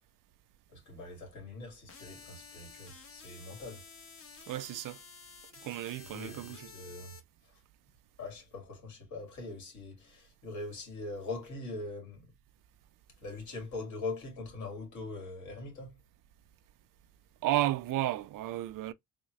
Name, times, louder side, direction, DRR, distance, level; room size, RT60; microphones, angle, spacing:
voice 1, 0.7-3.8 6.0-7.2 7.4-7.6 8.2-12.3 13.2-16.0, left 2 dB, 60° left, 2.1 m, -42 dB
sound 1, 1.9-7.2, left 5 dB, 40° left, 1.0 m, -52 dB
voice 2, 4.5-5.0 5.6-6.7 17.4-18.9, right 14 dB, 70° right, 0.5 m, -33 dB
3.6 x 2.1 x 3.0 m
cardioid pair, 140°, 34 cm